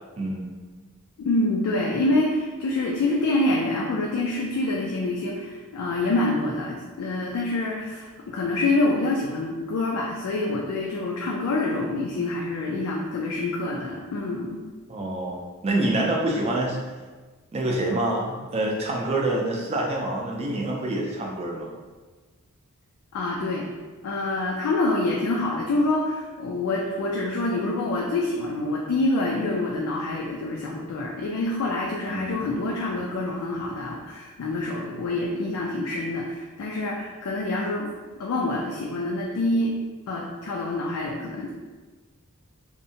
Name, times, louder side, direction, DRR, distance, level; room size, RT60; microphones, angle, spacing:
voice 1, 1.2-14.6 23.1-23.7 24.0-37.9 38.2-39.7 40.1-41.5, left 2 dB, 80° left, -2 dB, 0.3 m, -26 dB
voice 2, 14.9-16.8 17.5-21.7 32.1-32.4, right 1 dB, 30° right, -1 dB, 0.3 m, -26 dB
2.6 x 2.1 x 2.6 m, 1.3 s
head